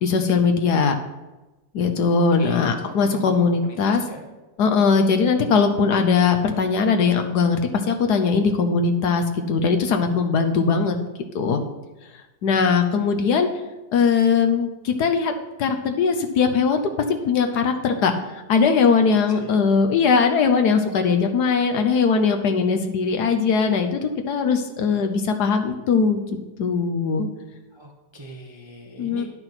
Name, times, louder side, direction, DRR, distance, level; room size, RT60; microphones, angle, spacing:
voice 1, 0.0-0.9 1.7-4.0 4.6-7.6 7.9-10.9 11.3-11.6 12.4-13.5 13.9-15.3 15.6-16.8 17.1-18.1 18.5-26.2 26.6-27.3 29.0-29.3, left 5 dB, 65° left, 5 dB, 1.2 m, -20 dB
voice 2, 2.4-4.2 19.0-19.5 27.7-29.3, right 1 dB, 30° right, 1 dB, 0.5 m, -40 dB
10.5 x 5.8 x 5.8 m, 1.1 s
omnidirectional pair, 2.1 m